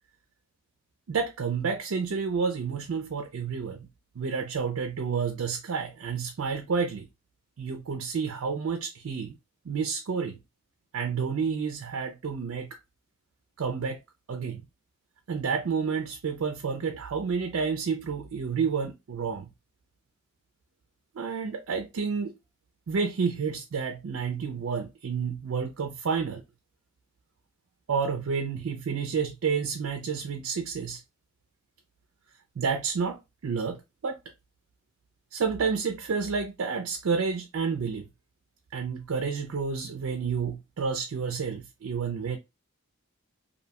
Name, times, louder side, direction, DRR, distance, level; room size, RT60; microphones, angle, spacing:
voice 1, 1.1-3.9 4.2-7.1 7.6-9.4 9.7-10.4 10.9-12.8 13.6-14.0 14.3-14.6 15.3-19.5 21.1-22.3 22.9-26.4 27.9-31.0 32.6-34.2 35.3-38.0 38.7-42.4, right 5 dB, 65° right, 0.4 m, -30 dB
2.6 x 2.1 x 2.8 m
head